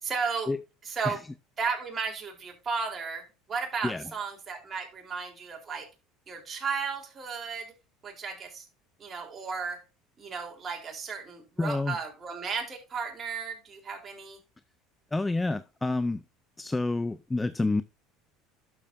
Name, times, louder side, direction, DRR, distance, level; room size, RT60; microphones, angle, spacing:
voice 1, 0.0-0.5 0.8-1.2 1.6-5.9 6.3-7.7 8.0-8.6 9.0-9.8 10.2-14.4, right 5 dB, 35° right, 3.7 m, -34 dB
voice 2, 11.6-12.0 15.1-16.2 16.6-17.8, left 2 dB, 15° left, 0.5 m, -28 dB
11.5 x 7.4 x 2.6 m
hypercardioid pair, 80°, 0 cm